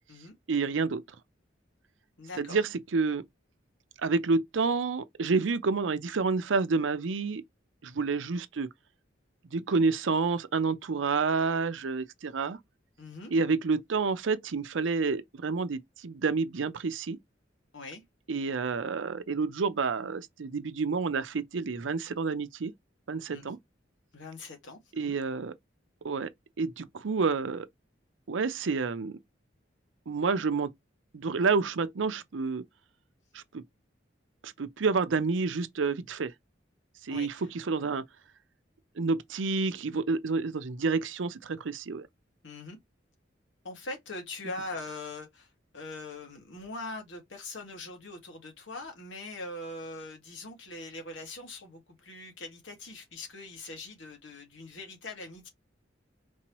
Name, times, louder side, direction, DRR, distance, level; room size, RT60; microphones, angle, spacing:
voice 1, 0.5-1.0 2.4-3.2 4.0-7.4 7.8-8.7 9.5-12.6 13.3-17.2 18.3-22.7 23.1-23.6 25.0-25.5 26.0-26.3 26.6-27.7 28.3-29.2 30.1-30.7 31.1-32.6 33.3-33.6 34.4-36.3 37.0-38.0 39.0-42.1, right 4 dB, 85° right, 0.6 m, -29 dB
voice 2, 2.2-2.6 13.0-13.3 17.7-18.0 23.3-23.5 24.1-25.2 37.1-37.5 42.4-42.8 43.6-55.5, left 2 dB, 85° left, 1.8 m, -42 dB
4.5 x 3.0 x 2.9 m
head